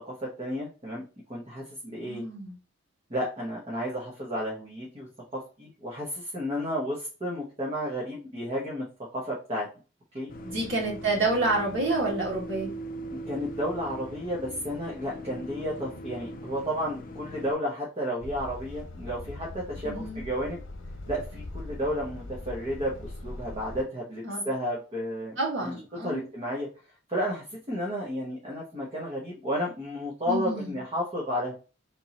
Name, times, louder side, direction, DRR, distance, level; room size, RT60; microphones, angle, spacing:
voice 1, 0.0-1.0 1.3-2.2 3.1-8.8 9.1-9.7 10.1-10.3 13.1-20.6 21.1-25.7 26.0-26.7 27.1-31.5, equal, 30° right, -4 dB, 1.0 m, -32 dB
voice 2, 2.0-2.6 10.4-12.7 19.8-20.2 24.2-24.4 25.4-26.3 30.3-30.8, right 2 dB, 70° right, -3 dB, 1.9 m, -29 dB
sound 1, 10.3-17.5, right 1 dB, 45° left, 0.5 m, -40 dB
Truck, 18.2-23.8, left 2 dB, 90° left, 1.0 m, -41 dB
3.5 x 2.9 x 4.1 m, 0.35 s
head